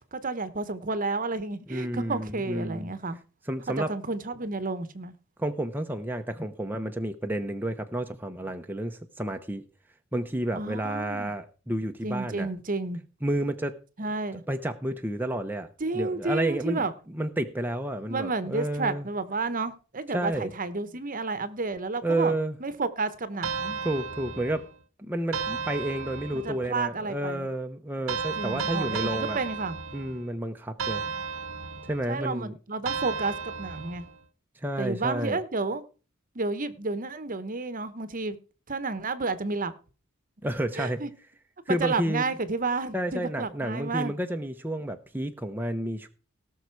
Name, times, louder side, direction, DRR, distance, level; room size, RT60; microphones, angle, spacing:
voice 1, 0.1-3.2 3.8-5.1 10.5-11.3 12.0-13.0 14.0-14.4 15.8-16.9 18.1-22.3 22.6-23.8 26.3-27.5 28.4-29.8 32.1-34.0 34.8-35.8 36.3-38.4 38.7-39.7 40.8-41.1 41.7-44.1, right 3 dB, 40° right, 1.1 m, -31 dB
voice 2, 1.7-2.9 3.5-3.9 5.4-9.6 10.1-12.5 13.2-13.8 14.3-15.7 15.9-16.8 17.1-19.1 20.1-20.5 22.0-22.6 23.8-24.7 25.0-29.4 29.9-31.0 31.9-32.5 34.6-35.4 40.4-41.0 41.7-42.2 42.9-46.1, right 1 dB, 10° right, 0.8 m, -30 dB
sound 1, 23.4-24.7 25.3-26.6 28.1-30.3 30.8-32.1 32.9-34.2, right 5 dB, 65° right, 1.0 m, -33 dB
18.0 x 6.5 x 4.7 m
head